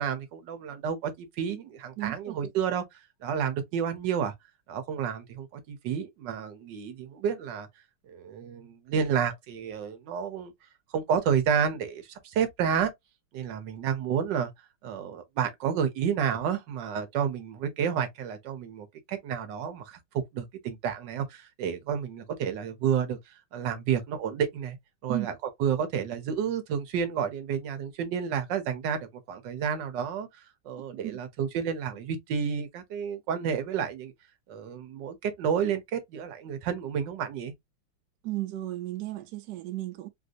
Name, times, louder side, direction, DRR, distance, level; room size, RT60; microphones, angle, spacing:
voice 1, 0.0-2.8 3.2-4.3 4.7-7.7 8.1-10.5 10.9-12.9 13.3-14.5 14.8-20.0 20.3-23.2 23.5-24.8 25.0-25.3 25.6-30.3 30.6-34.1 34.5-37.5, right 7 dB, 65° right, 1.3 m, -30 dB
voice 2, 2.0-2.5 25.1-25.3 31.0-31.2 38.2-40.1, right 16 dB, 85° right, 0.9 m, -34 dB
3.4 x 2.6 x 2.4 m
omnidirectional pair, 2.4 m